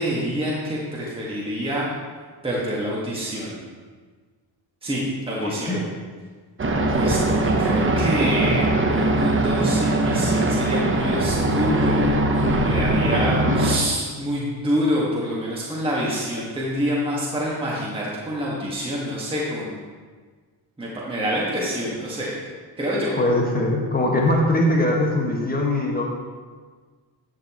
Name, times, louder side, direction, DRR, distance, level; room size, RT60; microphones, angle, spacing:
voice 1, 0.0-1.9 2.4-3.6 4.8-5.8 6.9-19.8 20.8-22.3 22.8-23.1, equal, 10° right, -6 dB, 1.7 m, -27 dB
voice 2, 5.4-5.8 23.1-26.0, left 1 dB, 20° left, -1 dB, 1.6 m, -21 dB
sound 1, 6.6-13.8, right 1 dB, 25° right, 0.9 m, -21 dB
10.5 x 7.0 x 3.0 m, 1.5 s
cardioid pair, 100°, 45 cm